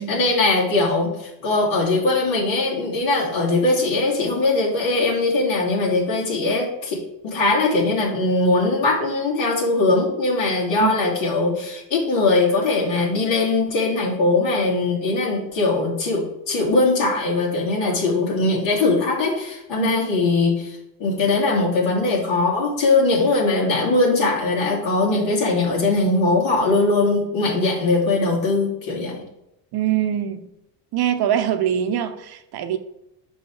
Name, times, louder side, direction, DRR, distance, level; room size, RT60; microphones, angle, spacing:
voice 1, 0.0-29.2, left 3 dB, 65° left, -3 dB, 2.8 m, -21 dB
voice 2, 29.7-30.5 30.9-32.8, right 10 dB, 50° right, 9 dB, 0.8 m, -23 dB
5.6 x 5.4 x 4.8 m, 0.84 s
supercardioid pair, 75°, 49 cm